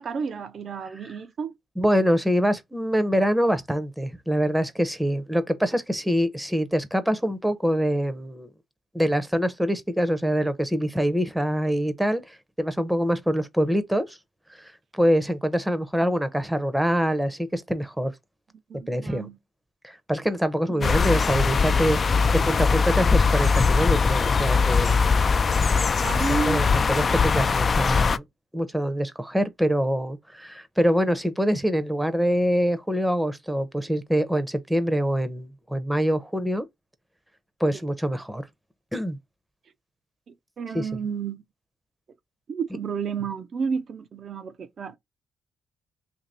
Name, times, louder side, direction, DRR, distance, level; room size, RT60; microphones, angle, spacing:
voice 1, 0.0-1.5 18.7-19.4 20.7-20.9 26.0-26.7 37.7-37.8 40.3-41.4 42.5-45.0, right 6 dB, 50° right, 0.4 m, -31 dB
voice 2, 1.8-8.5 8.9-14.2 14.5-18.1 18.9-19.3 19.8-25.2 26.5-28.2 28.5-36.7 37.6-38.5 38.9-39.2 40.7-40.9, equal, 5° right, 0.6 m, -25 dB
sound 1, 20.8-28.2, left 5 dB, 40° left, 0.3 m, -21 dB
2.8 x 2.6 x 4.1 m
cardioid pair, 90°, 0 cm